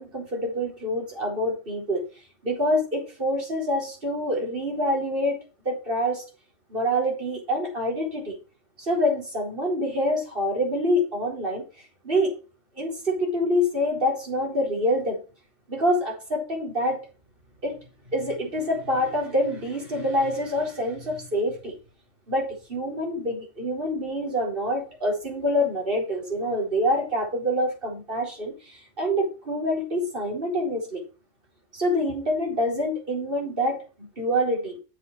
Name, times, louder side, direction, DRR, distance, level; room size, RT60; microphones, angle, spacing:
voice 1, 0.0-2.0 2.4-5.4 5.6-6.2 6.7-8.4 8.8-11.6 12.0-12.3 12.8-15.2 15.7-17.0 17.6-17.8 18.1-21.7 22.3-31.0 31.7-34.8, equal, 50° right, 4.5 m, -26 dB
8.5 x 7.4 x 4.7 m
omnidirectional pair, 1.2 m